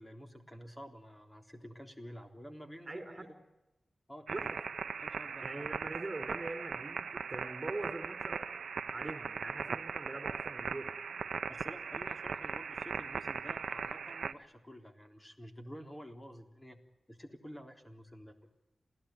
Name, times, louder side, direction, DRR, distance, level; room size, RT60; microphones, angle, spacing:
voice 1, 0.0-3.4 4.1-4.5 5.0-5.7 11.5-16.8 17.1-18.4, equal, 15° left, 4 dB, 3.7 m, -50 dB
voice 2, 2.9-3.3 4.3-4.6 5.4-8.4 8.9-10.9, right 2 dB, 30° right, 8 dB, 4.5 m, -42 dB
sound 1, 4.3-14.3, right 6 dB, 85° right, 0.9 m, -39 dB
28.0 x 17.0 x 9.2 m, 1.0 s
wide cardioid pair, 105°, 0 cm